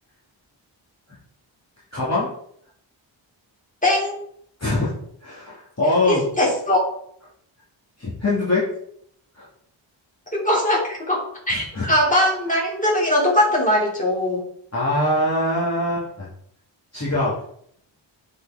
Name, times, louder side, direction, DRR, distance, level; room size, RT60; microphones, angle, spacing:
voice 1, 1.9-2.3 4.6-4.9 5.2-6.3 8.0-8.7 9.3-9.5 11.5-11.9 14.7-16.3 16.9-17.3, left 2 dB, 35° left, -8 dB, 2.6 m, -23 dB
voice 2, 3.8-4.3 6.1-6.9 10.3-14.4, left 1 dB, 15° left, -4 dB, 3.3 m, -21 dB
9.4 x 4.9 x 3.9 m, 0.68 s
wide cardioid pair, 100°, 46 cm